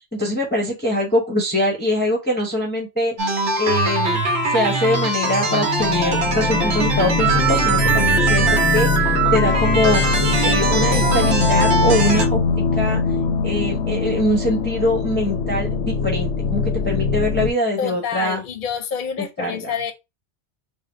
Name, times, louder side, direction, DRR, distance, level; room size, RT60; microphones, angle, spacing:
voice 1, 0.1-3.1 3.6-4.2 4.5-10.0 10.4-13.0 13.4-18.4 19.4-19.7, left 1 dB, 10° left, 0.6 m, -23 dB
sound 1, 3.2-12.3, right 2 dB, 75° right, 1.1 m, -20 dB
sound 2, 5.8-17.5, left 4 dB, 85° left, 0.9 m, -22 dB
voice 2, 17.8-19.9, left 7 dB, 55° left, 0.7 m, -27 dB
3.5 x 2.0 x 3.7 m
omnidirectional pair, 1.2 m